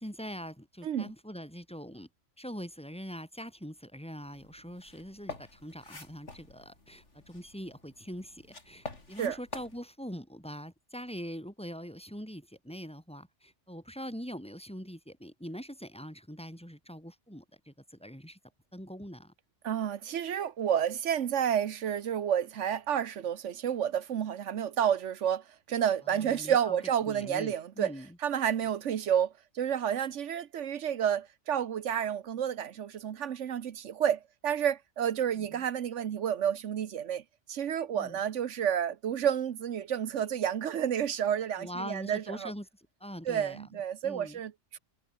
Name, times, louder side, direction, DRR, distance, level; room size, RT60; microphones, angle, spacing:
voice 1, 0.0-2.1 2.4-18.4 18.7-19.3 26.1-26.8 27.1-28.1 35.4-35.6 37.9-38.2 41.6-42.7 43.0-43.6 44.0-44.4, equal, 5° left, 5.5 m, -43 dB
sound 1, 4.2-9.8, left 2 dB, 75° left, 4.3 m, -47 dB
voice 2, 19.6-27.9 28.2-37.2 37.5-42.5 43.2-44.8, right 9 dB, 85° right, 1.2 m, -30 dB
omnidirectional pair, 1.2 m